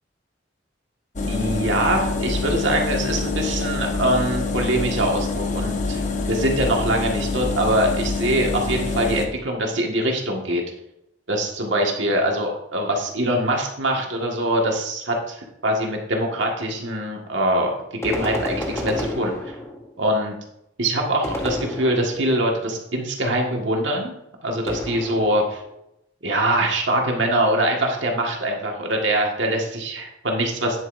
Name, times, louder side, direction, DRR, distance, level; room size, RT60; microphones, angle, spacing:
sound 1, 1.2-9.3, left 3 dB, 40° left, 0.9 m, -26 dB
voice 1, 1.3-10.6 11.3-19.5 20.0-20.3 20.8-24.2 24.4-25.6 26.2-30.8, right 1 dB, 75° right, 0 dB, 1.8 m, -23 dB
sound 2, 18.0-20.0 21.2-22.4 24.7-25.7, left 1 dB, 15° left, 0.9 m, -31 dB
9.7 x 8.2 x 2.7 m, 0.82 s
head